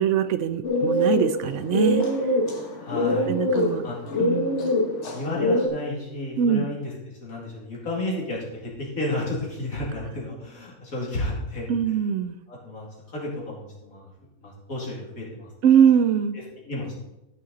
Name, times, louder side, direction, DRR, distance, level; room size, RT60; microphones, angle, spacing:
voice 1, 0.0-2.1 3.3-3.9 4.2-4.7 6.4-6.6 11.7-12.4 15.6-16.4, right 8 dB, 70° right, 12 dB, 0.8 m, -22 dB
sound 1, 0.6-5.7, left 1 dB, 55° left, 1.7 m, -24 dB
voice 2, 2.8-3.3 3.8-4.0 5.1-6.9 7.2-11.9 12.5-14.1 14.4-15.5 16.7-17.1, left 2 dB, 80° left, -4 dB, 3.2 m, -32 dB
13.5 x 6.5 x 4.1 m, 0.94 s
omnidirectional pair, 1.4 m